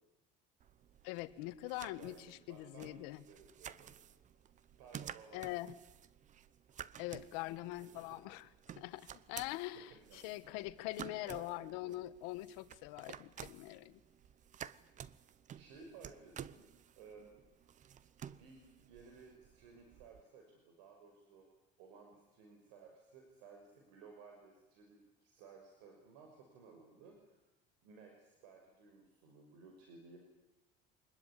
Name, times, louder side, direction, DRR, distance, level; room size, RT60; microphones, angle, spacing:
sound 1, 0.6-20.2, right 9 dB, 40° right, 0.9 m, -53 dB
voice 1, 1.0-3.2 5.3-5.7 7.0-8.5 8.8-14.0, left 17 dB, 85° left, 12 dB, 1.5 m, -43 dB
voice 2, 1.8-3.9 4.8-5.7 8.0-8.2 9.7-10.3 11.0-12.0 15.5-17.3 18.4-21.5 21.8-27.4 27.8-30.2, right 5 dB, 90° right, 2 dB, 5.9 m, -58 dB
25.0 x 21.0 x 9.9 m, 1.0 s
cardioid pair, 125°, 20 cm